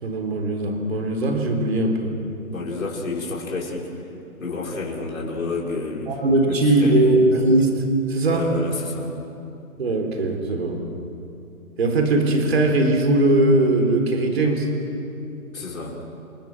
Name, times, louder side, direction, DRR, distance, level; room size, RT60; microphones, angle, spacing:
voice 1, 0.0-2.1 6.1-7.7 8.1-8.5 9.8-10.8 11.8-14.7, right 2 dB, 45° right, 4 dB, 4.0 m, -20 dB
voice 2, 2.5-3.9 4.4-6.1 6.5-7.1 8.3-9.1 15.5-16.0, left 3 dB, 65° left, -3 dB, 5.8 m, -30 dB
30.0 x 25.0 x 6.2 m, 2.8 s
hypercardioid pair, 175°, 44 cm